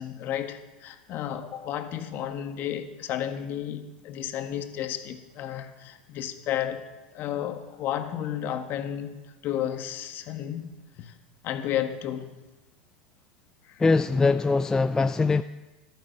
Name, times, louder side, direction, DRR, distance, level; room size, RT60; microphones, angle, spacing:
voice 1, 0.0-6.8 7.1-9.2 9.4-10.7 11.0-11.1 11.4-12.3 13.7-13.8, left 10 dB, 45° left, 1.5 m, -32 dB
voice 2, 13.8-15.4, left 3 dB, 15° left, 0.4 m, -22 dB
14.0 x 12.0 x 6.7 m
hypercardioid pair, 105°, 5 cm